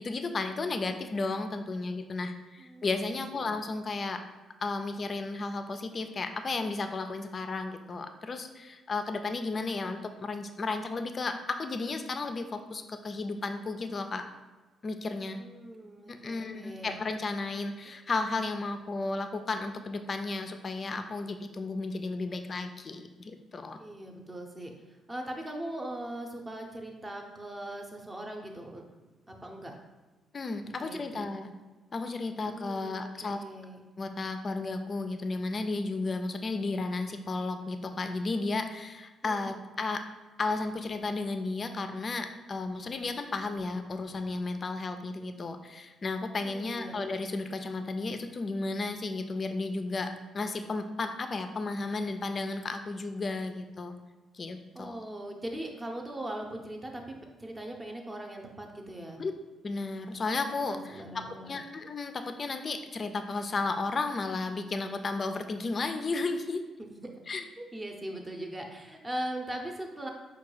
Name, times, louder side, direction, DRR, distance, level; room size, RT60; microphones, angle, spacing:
voice 1, 0.0-4.2 4.6-14.3 14.8-15.4 16.1-23.8 30.3-31.5 31.9-33.4 34.0-40.0 40.4-54.0 54.3-55.0 59.2-59.3 59.6-66.6 67.3-67.4, left 3 dB, 40° left, 8 dB, 0.4 m, -33 dB
voice 2, 2.6-3.5 15.3-17.0 23.8-24.7 25.1-28.8 29.3-29.8 30.8-31.3 32.4-33.8 39.2-39.5 46.4-47.0 54.7-57.1 57.4-59.2 60.7-61.7 66.8-67.2 67.6-70.1, right 1 dB, 20° right, 2 dB, 0.7 m, -40 dB
4.5 x 2.3 x 4.8 m, 1.2 s
cardioid pair, 90°, 0 cm